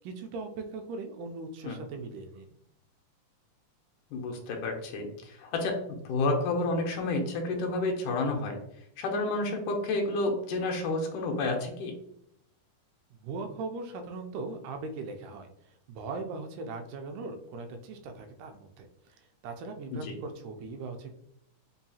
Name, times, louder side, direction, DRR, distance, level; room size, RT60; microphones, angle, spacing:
voice 1, 0.0-2.5 13.1-19.2 19.4-21.2, right 3 dB, 85° right, 5 dB, 2.0 m, -39 dB
voice 2, 4.1-8.6 9.0-11.9 19.9-20.1, left 2 dB, 85° left, 2 dB, 2.2 m, -30 dB
5.5 x 2.3 x 2.7 m, 0.76 s
omnidirectional pair, 3.6 m